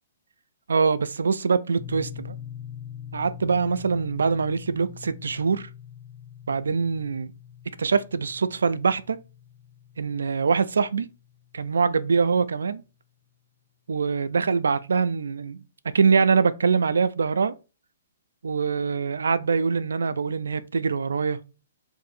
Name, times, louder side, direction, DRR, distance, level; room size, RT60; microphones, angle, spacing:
voice 1, 0.7-2.4 3.1-5.7 6.5-7.3 7.8-9.2 10.0-11.1 11.5-12.8 13.9-15.6 15.9-17.5 18.4-21.4, right 5 dB, 85° right, 0.3 m, -23 dB
sound 1, 1.8-11.9, left 9 dB, 5° left, 0.3 m, -43 dB
2.6 x 2.5 x 4.1 m
hypercardioid pair, 140°, 0 cm